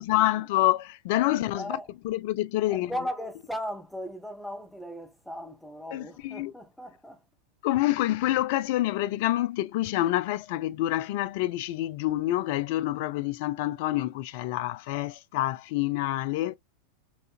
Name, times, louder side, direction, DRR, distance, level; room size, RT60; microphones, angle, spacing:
voice 1, 0.0-2.9 5.9-6.5 7.6-16.6, left 15 dB, 50° left, 0.3 m, -27 dB
voice 2, 1.5-1.9 2.7-7.2, equal, ahead, 0.9 m, -37 dB
4.1 x 2.5 x 2.4 m
figure-of-eight pair, 90°, 0 cm